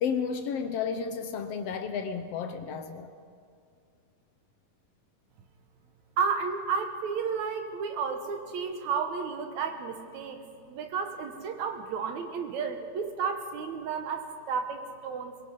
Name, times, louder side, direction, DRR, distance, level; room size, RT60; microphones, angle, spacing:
voice 1, 0.0-3.1, left 6 dB, 75° left, 8 dB, 1.5 m, -32 dB
voice 2, 6.2-15.4, right 6 dB, 70° right, 7 dB, 2.3 m, -32 dB
22.5 x 21.5 x 5.4 m, 2.3 s
omnidirectional pair, 3.7 m